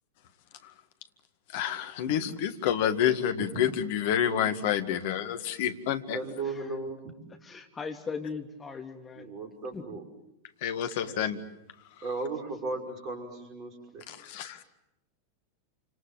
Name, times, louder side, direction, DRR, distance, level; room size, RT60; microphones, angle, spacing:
voice 1, 1.5-6.2 10.6-11.4 14.1-14.6, left 9 dB, 50° left, 9 dB, 1.9 m, -28 dB
voice 2, 6.1-7.0 9.1-10.0 12.0-14.4, right 3 dB, 35° right, 4 dB, 5.8 m, -36 dB
voice 3, 7.4-9.3 9.7-9.8, left 5 dB, 15° left, 3 dB, 3.2 m, -38 dB
28.5 x 26.5 x 7.7 m, 0.87 s
figure-of-eight pair, 90°, 0 cm